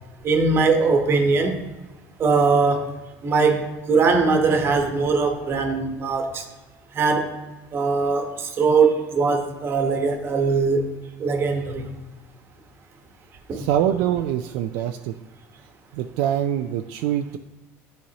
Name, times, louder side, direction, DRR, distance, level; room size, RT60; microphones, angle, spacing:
voice 1, 0.2-1.6 2.2-2.9 3.2-6.4 6.9-7.3 7.7-10.9 11.2-11.9 13.5-13.6, right 4 dB, 40° right, 5 dB, 1.1 m, -21 dB
voice 2, 13.5-15.1 15.9-17.4, right 10 dB, 75° right, 7 dB, 0.3 m, -24 dB
10.0 x 4.1 x 2.9 m, 1.1 s
supercardioid pair, 110°, 6 cm